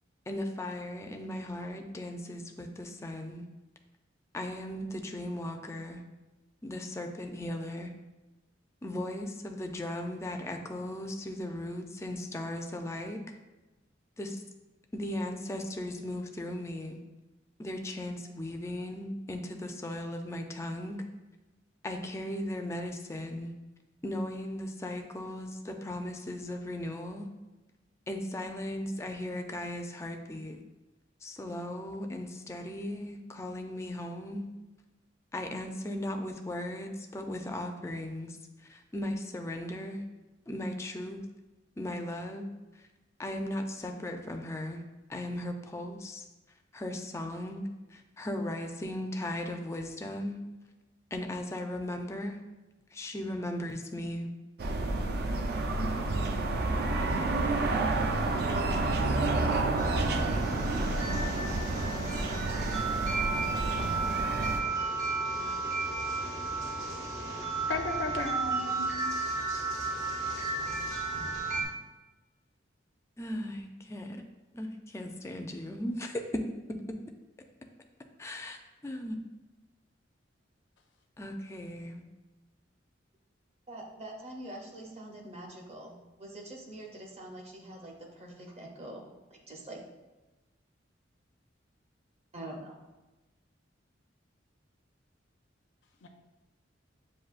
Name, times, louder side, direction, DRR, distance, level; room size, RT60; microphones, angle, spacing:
voice 1, 0.3-3.5 4.3-6.0 6.6-7.9 8.8-13.4 14.2-14.4 14.9-17.0 17.6-21.0 21.8-23.5 24.0-27.3 28.1-30.6 31.2-34.5 35.3-40.0 40.5-41.2 41.8-42.5 42.7-42.9 43.2-44.8 45.1-46.2 46.7-50.4 51.1-52.4 52.9-54.3 73.2-74.2 74.5-76.4 78.2-78.6 78.8-79.2 81.2-82.0, left 1 dB, 15° left, 4 dB, 0.3 m, -37 dB
sound 1, 54.6-64.6, right 2 dB, 55° right, 0.4 m, -29 dB
sound 2, 59.8-71.6, right 3 dB, 75° right, 1.4 m, -33 dB
voice 2, 67.7-69.0 96.0-96.1, left 3 dB, 80° left, 3 dB, 0.5 m, -34 dB
voice 3, 83.7-89.0 89.3-89.8 92.3-92.8, right 1 dB, 35° right, -1 dB, 0.7 m, -44 dB
7.2 x 2.6 x 2.4 m, 1.1 s
head